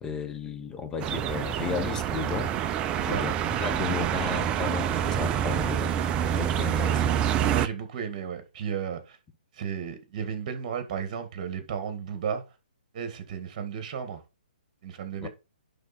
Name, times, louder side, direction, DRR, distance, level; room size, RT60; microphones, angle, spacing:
voice 1, 0.0-2.5 3.0-6.0 6.3-7.2 15.2-15.3, left 6 dB, 10° left, 0.8 m, -34 dB
sound 1, 1.0-7.7, right 9 dB, 20° right, 0.4 m, -27 dB
voice 2, 7.4-9.2 9.5-12.4 12.9-14.2 14.8-15.3, right 7 dB, 40° right, 1.8 m, -34 dB
10.5 x 3.7 x 4.3 m
hypercardioid pair, 145°, 5 cm